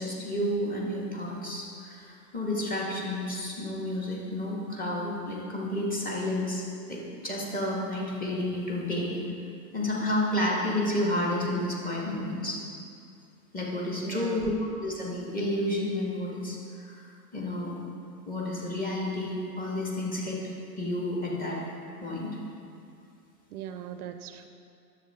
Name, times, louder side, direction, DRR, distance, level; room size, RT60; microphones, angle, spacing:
voice 1, 0.0-6.6 6.9-9.2 9.7-12.6 13.5-17.8 18.3-20.4 20.8-21.6 22.0-22.4, left 1 dB, 15° left, -4 dB, 1.8 m, -31 dB
voice 2, 14.0-14.5 23.5-24.5, right 10 dB, 65° right, 8 dB, 0.7 m, -39 dB
10.0 x 7.2 x 3.7 m, 2.4 s
hypercardioid pair, 100°, 48 cm